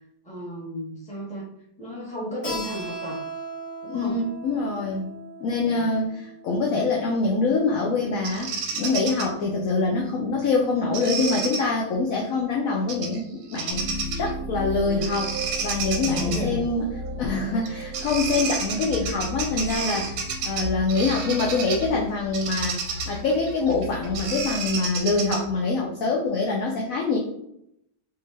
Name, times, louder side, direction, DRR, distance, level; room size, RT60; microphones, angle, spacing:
voice 1, 0.2-1.5 1.8-3.2 3.8-4.2 5.6-5.9 15.7-16.6, equal, 5° left, -6 dB, 0.9 m, -34 dB
Keyboard (musical), 2.4-7.7, right 1 dB, 35° left, 1.3 m, -38 dB
voice 2, 3.9-5.1 5.4-13.9 14.1-16.8 17.2-27.2, left 3 dB, 75° left, -1 dB, 0.8 m, -25 dB
Bird vocalization bird call bird song, 8.2-9.3 10.9-11.6 12.9-13.2 13.5-14.3 15.0-16.4 17.6-17.7 17.9-21.9 22.3-25.6, right 5 dB, 70° right, 1.1 m, -31 dB
sound 1, 13.7-25.3, left 1 dB, 50° right, 0.9 m, -35 dB
3.3 x 2.7 x 3.2 m, 0.76 s
omnidirectional pair, 2.0 m